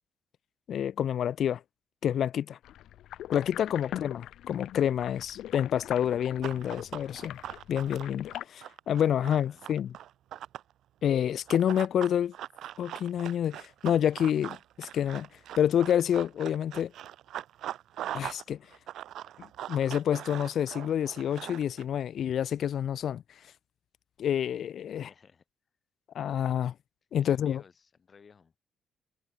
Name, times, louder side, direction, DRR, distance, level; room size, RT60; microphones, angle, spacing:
voice 1, 0.7-1.6 2.0-2.6 3.3-7.4 7.7-9.9 11.0-12.3 12.8-15.3 15.6-16.9 18.1-18.6 19.4-23.2 24.2-25.1 26.1-26.7 27.1-27.6, left 9 dB, 50° left, 0.8 m, -28 dB
sound 1, 2.6-8.4, left 12 dB, 75° left, 2.8 m, -41 dB
Run, 6.4-10.7 11.5-18.4 18.7-21.8, right 12 dB, 70° right, 0.6 m, -41 dB
voice 2, 8.9-9.7 24.9-25.4 27.2-28.5, left 6 dB, 30° left, 7.2 m, -57 dB
cardioid pair, 175°, 0 cm